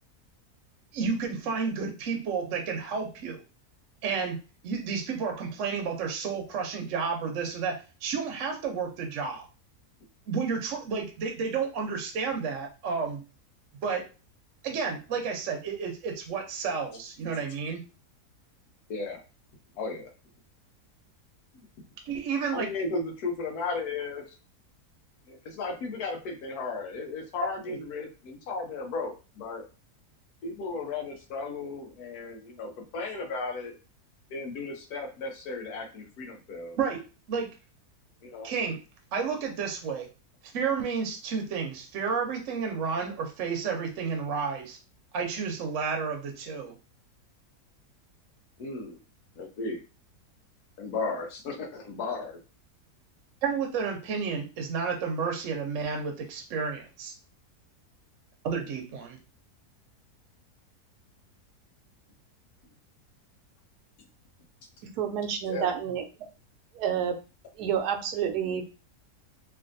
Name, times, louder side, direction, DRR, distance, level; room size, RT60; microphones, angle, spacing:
voice 1, 0.9-3.4 4.0-9.4 10.3-13.2 13.8-14.0 14.6-17.8 22.1-22.7 27.7-27.8 36.8-37.0 37.3-37.5 38.4-38.8 39.1-40.1 40.5-44.8 45.1-46.7 53.4-57.1 58.4-59.2, right 5 dB, 60° right, 2 dB, 0.9 m, -31 dB
voice 2, 18.9-19.2 19.7-20.1 21.5-21.7 22.5-24.2 25.3-29.6 30.4-33.8 34.3-36.8 38.2-38.5 48.6-49.0 49.4-49.8 50.8-52.4 65.5-65.7, left 3 dB, 75° left, 3 dB, 1.2 m, -35 dB
voice 3, 65.0-66.0 66.7-67.1 67.6-68.7, right 8 dB, 85° right, 6 dB, 1.1 m, -29 dB
3.2 x 2.5 x 2.5 m, 0.32 s
omnidirectional pair, 1.7 m